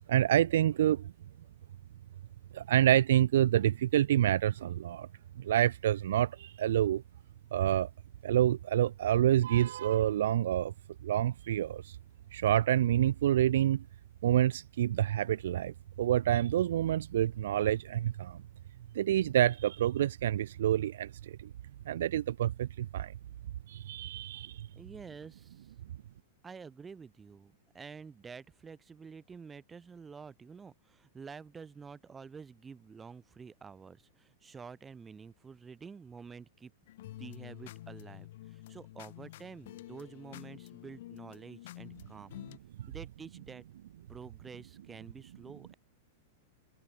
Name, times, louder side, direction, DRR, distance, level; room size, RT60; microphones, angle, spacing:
voice 1, 0.1-1.1 2.5-5.1 5.4-7.0 7.5-7.9 8.2-10.7 11.0-12.0 12.3-13.8 14.2-18.4 18.9-21.5 21.9-23.1 23.7-24.7, right 12 dB, 70° right, 1.1 m, -27 dB
voice 2, 24.8-25.7 26.4-36.7 37.0-42.4 42.9-43.6 44.1-45.8, right 5 dB, 15° right, 5.7 m, -49 dB
sound 1, 36.9-42.6, left 15 dB, 65° left, 6.0 m, -49 dB
hypercardioid pair, 105°, 0 cm